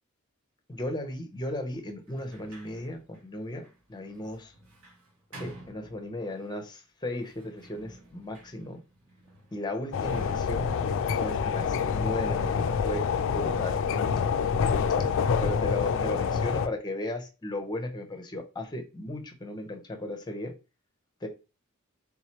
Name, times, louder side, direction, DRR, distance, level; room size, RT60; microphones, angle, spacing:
voice 1, 0.7-4.5 5.3-8.8 9.5-10.8 11.0-13.8 14.9-20.5 21.2-21.3, left 1 dB, 20° left, 0.6 m, -36 dB
Sliding door, 2.0-6.5 7.2-12.0, right 1 dB, 90° right, 1.3 m, -52 dB
sound 1, 9.9-16.7, left 6 dB, 60° left, 0.3 m, -27 dB
3.7 x 3.1 x 2.9 m
head